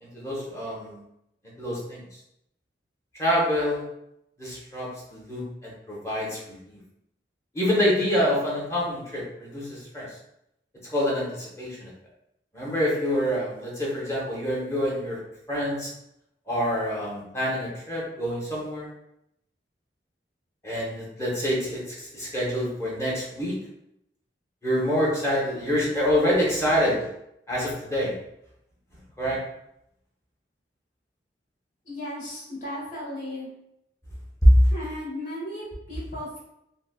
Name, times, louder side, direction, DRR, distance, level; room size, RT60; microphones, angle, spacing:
voice 1, 0.0-1.0 1.6-2.0 3.2-3.8 4.4-6.4 6.7-6.8 7.5-10.1 10.9-11.9 12.5-15.2 15.5-15.9 16.5-18.9 20.6-23.6 24.6-27.1 27.5-28.2 29.2-29.4, equal, 15° left, -5 dB, 0.9 m, -27 dB
voice 2, 31.8-33.5 34.7-36.4, left 1 dB, 50° left, -6 dB, 1.3 m, -35 dB
3.9 x 2.1 x 2.3 m, 0.80 s
head